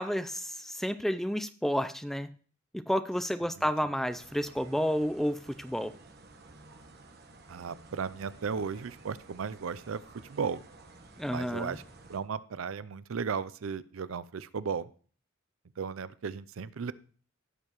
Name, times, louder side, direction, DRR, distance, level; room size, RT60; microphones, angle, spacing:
voice 1, 0.0-2.3 2.7-5.9 11.2-11.8, equal, ahead, 12 dB, 0.4 m, -31 dB
sound 1, 4.1-12.2, right 2 dB, 50° right, 1.2 m, -54 dB
voice 2, 7.5-10.6 11.3-11.8 12.1-14.9 15.8-16.9, right 6 dB, 90° right, 17 dB, 0.5 m, -35 dB
16.0 x 6.7 x 3.0 m, 0.42 s
head